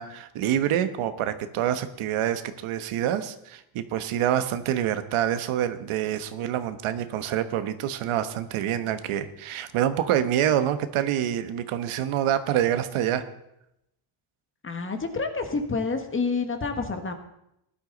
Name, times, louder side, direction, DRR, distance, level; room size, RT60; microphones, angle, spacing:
voice 1, 0.0-13.3, right 10 dB, 85° right, 11 dB, 1.2 m, -26 dB
voice 2, 14.6-17.1, left 4 dB, 25° left, 6 dB, 1.5 m, -28 dB
18.5 x 11.5 x 4.0 m, 0.80 s
cardioid pair, 150°, 49 cm